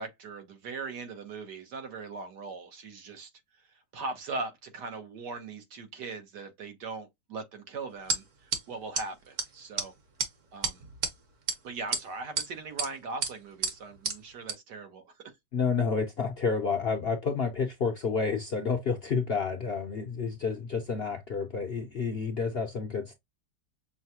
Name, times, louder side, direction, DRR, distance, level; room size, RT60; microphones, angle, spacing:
voice 1, 0.0-3.3 3.7-9.9 10.5-10.8 11.6-15.3, right 3 dB, 80° right, 1.7 m, -40 dB
sound 1, 8.1-8.2 8.5-8.6 9.0-9.1 9.4-9.5 9.8-9.9 10.2-10.3 10.6-11.1 11.5-11.6 11.9-12.5 12.8-12.9 13.2-13.3 13.6-13.7 14.1-14.2 14.5-14.6, right 4 dB, 50° right, 1.3 m, -29 dB
voice 2, 15.5-23.1, left 5 dB, 55° left, 0.6 m, -30 dB
6.2 x 2.2 x 2.8 m
omnidirectional pair, 1.8 m